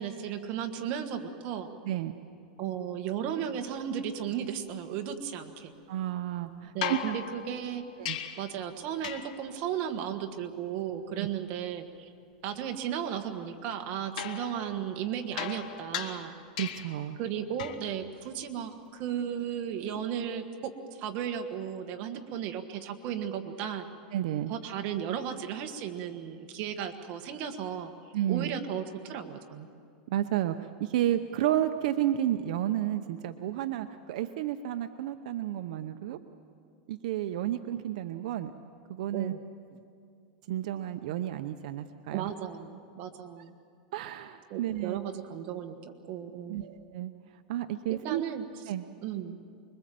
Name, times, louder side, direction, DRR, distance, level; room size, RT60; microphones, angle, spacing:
voice 1, 0.0-1.7 2.6-5.7 6.7-7.8 8.4-12.1 12.4-16.3 17.2-23.9 24.5-29.7 39.1-39.4 42.1-43.5 44.5-46.7 47.9-48.4 49.0-49.4, right 9 dB, 40° right, 6 dB, 1.5 m, -35 dB
voice 2, 1.8-2.2 5.9-7.0 8.0-8.2 11.2-11.3 16.6-17.2 24.1-24.5 28.1-28.5 30.1-36.2 36.9-38.5 38.9-39.3 40.5-42.3 43.9-45.0 46.5-47.1 47.5-48.2 48.7-48.9, right 12 dB, 65° right, 8 dB, 0.8 m, -31 dB
sound 1, 6.8-8.6 9.0-9.5 14.2-17.1 17.6-17.9 19.9-20.0, left 9 dB, 70° left, 1.5 m, -38 dB
25.0 x 22.5 x 7.7 m, 2.4 s
supercardioid pair, 160°, 4 cm